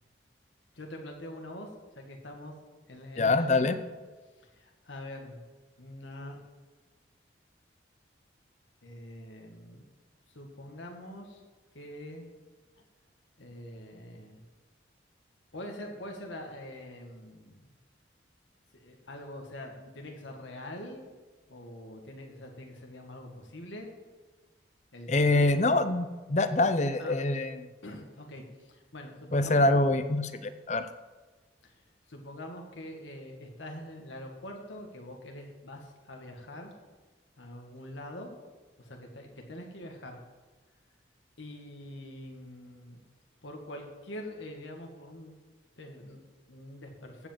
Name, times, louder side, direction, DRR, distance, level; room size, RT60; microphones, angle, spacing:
voice 1, 0.7-2.6 2.9-3.8 4.5-5.4 5.8-6.4 8.8-9.8 10.3-11.4 11.7-12.3 13.4-14.4 15.5-17.7 18.7-21.0 21.5-23.9 24.9-25.5 27.0-27.2 27.8-29.6 31.6-31.8 32.1-36.7 37.4-38.4 38.8-40.2 41.4-43.0 43.4-45.4 45.8-47.3, left 1 dB, 85° left, 2 dB, 1.9 m, -44 dB
voice 2, 3.2-3.8 25.1-27.7 29.3-30.9, left 2 dB, 40° left, 10 dB, 0.7 m, -25 dB
15.5 x 5.3 x 7.3 m, 1.3 s
head